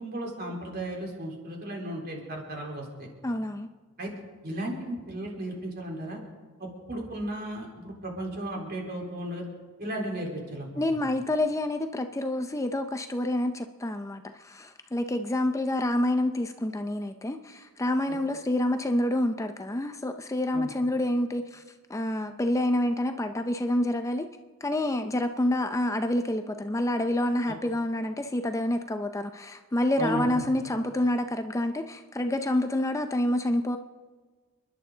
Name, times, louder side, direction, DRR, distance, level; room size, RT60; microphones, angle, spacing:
voice 1, 0.0-3.1 4.0-4.1 4.4-6.2 6.6-9.4 9.8-10.8 20.5-20.7 30.0-30.4, right 1 dB, 50° right, 0 dB, 3.8 m, -35 dB
voice 2, 3.2-3.7 10.8-21.6 21.9-24.3 24.6-33.8, left 1 dB, 15° left, 7 dB, 0.5 m, -28 dB
29.5 x 11.0 x 3.9 m, 1.4 s
head